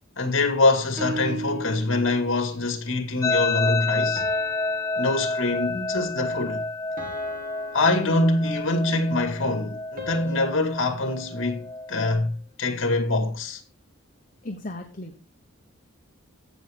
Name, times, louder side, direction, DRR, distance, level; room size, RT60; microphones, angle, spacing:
voice 1, 0.2-4.2 5.0-6.6 7.7-11.6 11.9-12.3 12.6-13.6, left 2 dB, 70° left, 2.1 m, -24 dB
sound 1, 1.0-2.5 4.2-5.8 7.0-8.9 10.0-12.3, right 1 dB, 40° right, 2.4 m, -38 dB
sound 2, 3.2-12.3, left 3 dB, 15° left, 0.5 m, -30 dB
voice 2, 14.4-15.2, left 1 dB, 40° left, 1.1 m, -36 dB
15.5 x 6.3 x 3.6 m
head